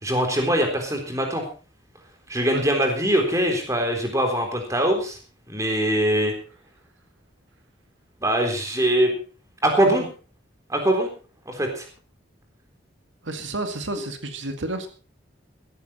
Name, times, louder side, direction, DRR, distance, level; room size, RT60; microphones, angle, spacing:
voice 1, 0.0-1.4 2.3-5.2 5.5-6.3 8.2-9.1 9.6-10.1 10.7-11.1 11.5-11.8, right 1 dB, 15° right, 3 dB, 3.8 m, -22 dB
voice 2, 13.2-14.9, right 2 dB, 80° right, 7 dB, 2.1 m, -30 dB
16.0 x 14.0 x 4.4 m, 0.36 s
head